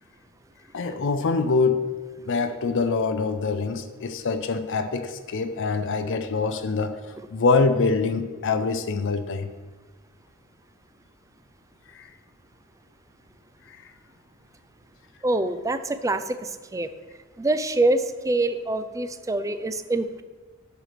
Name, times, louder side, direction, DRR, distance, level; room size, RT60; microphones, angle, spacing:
voice 1, 0.7-1.8 2.3-6.9 7.3-9.5 11.9-12.1 13.7-13.8, left 4 dB, 60° left, 9 dB, 0.5 m, -24 dB
voice 2, 15.2-16.9 17.4-20.2, right 2 dB, 15° right, 10 dB, 0.4 m, -25 dB
8.0 x 6.7 x 5.9 m, 1.3 s
head